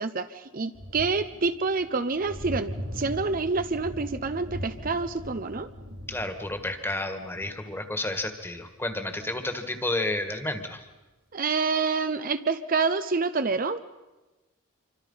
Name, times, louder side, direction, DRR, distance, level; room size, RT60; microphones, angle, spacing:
voice 1, 0.0-5.7 11.3-13.8, right 4 dB, 45° right, 10 dB, 0.7 m, -27 dB
sound 1, 0.7-9.2 10.8-10.9, equal, 75° right, 4.4 m, -40 dB
voice 2, 6.1-10.9, left 2 dB, 10° left, 7 dB, 1.8 m, -31 dB
27.0 x 24.5 x 5.7 m, 1.1 s
head